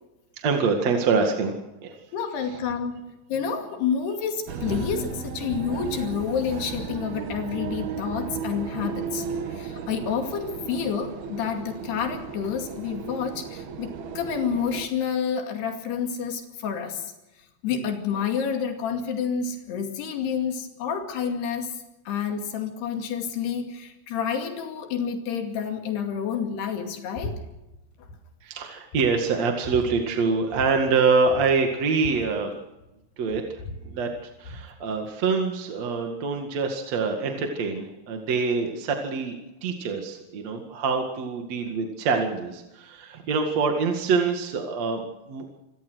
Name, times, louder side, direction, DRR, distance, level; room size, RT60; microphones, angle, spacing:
voice 1, 0.4-1.5 1.8-2.0 28.4-32.5 33.2-33.4 33.9-39.3 39.6-45.5, right 4 dB, 50° right, 3 dB, 2.8 m, -25 dB
voice 2, 2.1-2.9 3.3-9.3 9.5-17.1 17.6-21.7 22.1-27.4, left 7 dB, 85° left, 4 dB, 4.5 m, -29 dB
sound 1, 4.5-14.9, right 6 dB, 75° right, 3.8 m, -35 dB
sound 2, 27.2-27.4 27.6-28.2 28.6-28.7 28.9-29.9 30.5-30.7 31.0-31.1 31.3-32.9 33.3-34.7, left 2 dB, 60° left, 6.6 m, -38 dB
28.0 x 17.5 x 6.4 m, 0.98 s
omnidirectional pair, 4.6 m